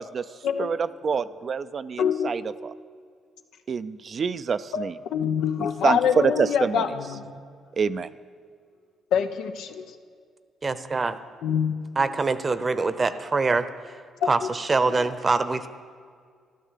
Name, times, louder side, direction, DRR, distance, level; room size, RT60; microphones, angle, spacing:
voice 1, 0.6-2.7 3.7-5.0 5.6-6.8 7.8-8.1, right 6 dB, 45° right, 13 dB, 0.5 m, -26 dB
voice 2, 2.0-2.3 4.7-7.4 9.1-9.9 11.4-11.7 14.2-14.3 14.9-15.0, left 7 dB, 85° left, 6 dB, 1.1 m, -25 dB
voice 3, 10.6-11.2 12.0-13.7 14.3-15.7, right 3 dB, 30° right, 13 dB, 0.9 m, -24 dB
13.0 x 12.0 x 8.3 m, 2.1 s
cardioid pair, 90°, 0 cm